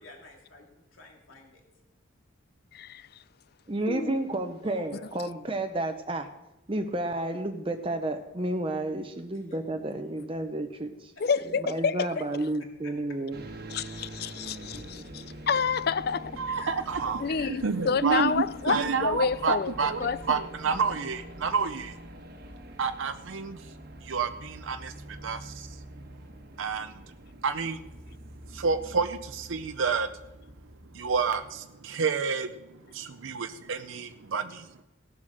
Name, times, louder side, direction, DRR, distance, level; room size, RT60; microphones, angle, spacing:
voice 1, 0.0-1.6 4.6-5.2 9.3-9.6 12.8-13.2 17.0-17.3, left 2 dB, 85° left, 2.7 m, -51 dB
voice 2, 2.7-3.1 3.9-4.4 11.2-12.2 13.7-16.7 17.2-19.7 20.0-20.2, left 5 dB, 50° left, 0.4 m, -29 dB
voice 3, 3.7-6.3 6.7-11.1 11.6-13.4, right 1 dB, 25° right, 0.7 m, -31 dB
sound 1, 13.3-31.6, right 1 dB, 50° right, 1.3 m, -45 dB
voice 4, 16.4-21.9 22.8-23.6 24.0-25.8 26.6-27.0 27.4-27.8 28.5-30.1 30.9-34.8, right 5 dB, 80° right, 0.6 m, -29 dB
17.5 x 7.5 x 6.4 m
head